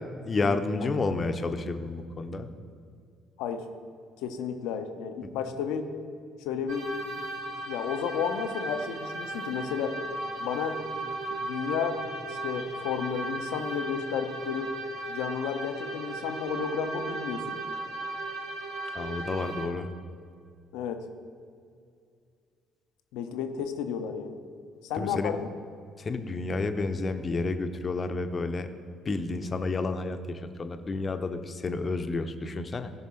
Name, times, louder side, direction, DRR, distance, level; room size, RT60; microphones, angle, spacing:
voice 1, 0.2-2.5 5.2-5.3 18.9-19.9 25.0-25.3 26.0-28.7 29.0-32.9, left 3 dB, 35° left, 8 dB, 0.9 m, -30 dB
voice 2, 4.2-5.9 6.4-6.9 7.7-10.0 10.4-14.7 15.1-17.6 20.7-21.1 23.1-24.4 24.8-25.5, left 7 dB, 65° left, 8 dB, 0.8 m, -32 dB
sound 1, 6.7-19.7, right 2 dB, 75° right, 2.1 m, -36 dB
17.0 x 6.0 x 4.4 m, 2.3 s
figure-of-eight pair, 50°, 0 cm